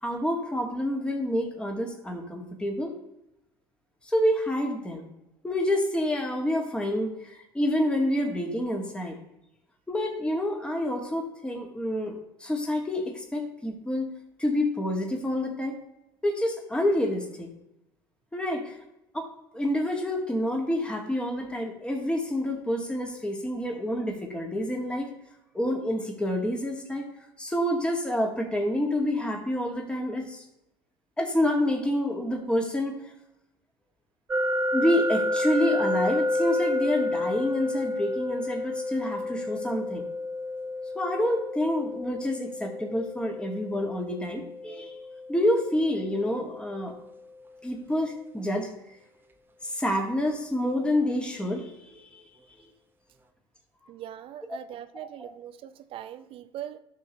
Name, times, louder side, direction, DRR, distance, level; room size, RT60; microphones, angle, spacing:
voice 1, 0.0-2.9 4.1-5.1 5.4-9.2 9.9-14.1 14.4-15.8 16.2-17.5 18.3-18.8 19.1-19.3 19.5-25.1 25.5-27.1 27.4-30.4 31.2-33.0 34.7-40.1 41.0-44.9 45.3-46.9 47.6-48.7 49.6-52.2 55.2-55.3, left 1 dB, 10° left, 1.9 m, -28 dB
sound 1, 34.3-47.2, left 2 dB, 15° right, 0.9 m, -30 dB
voice 2, 53.9-56.8, right 11 dB, 45° right, 0.7 m, -41 dB
13.0 x 6.3 x 3.1 m
figure-of-eight pair, 65°, 13 cm